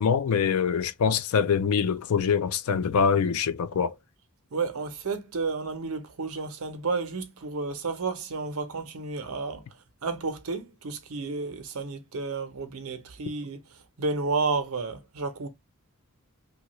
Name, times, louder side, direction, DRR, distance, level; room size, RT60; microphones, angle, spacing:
voice 1, 0.0-3.9, left 6 dB, 80° left, 0.4 m, -24 dB
voice 2, 4.5-9.6 10.0-13.6 14.0-15.5, right 4 dB, 75° right, 0.7 m, -31 dB
2.8 x 2.3 x 3.0 m
head